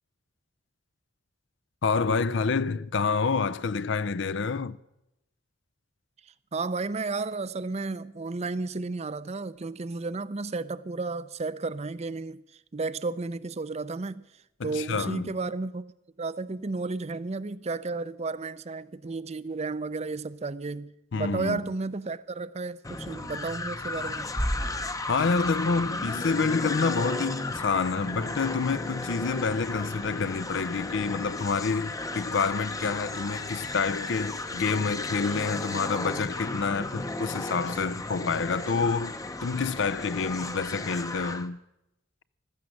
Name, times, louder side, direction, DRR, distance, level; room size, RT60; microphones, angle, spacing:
voice 1, 1.8-4.8 14.6-15.3 21.1-21.6 25.0-39.1 39.4-41.6, left 5 dB, 65° left, 0.5 m, -28 dB
voice 2, 6.3-12.4 12.7-14.2 14.6-15.9 16.2-24.3, right 3 dB, 35° right, 0.5 m, -33 dB
sound 1, 22.8-41.5, left 2 dB, 15° left, 0.7 m, -34 dB
Bass drum, 24.4-26.0, equal, 10° right, 0.9 m, -33 dB
15.5 x 13.5 x 6.4 m
head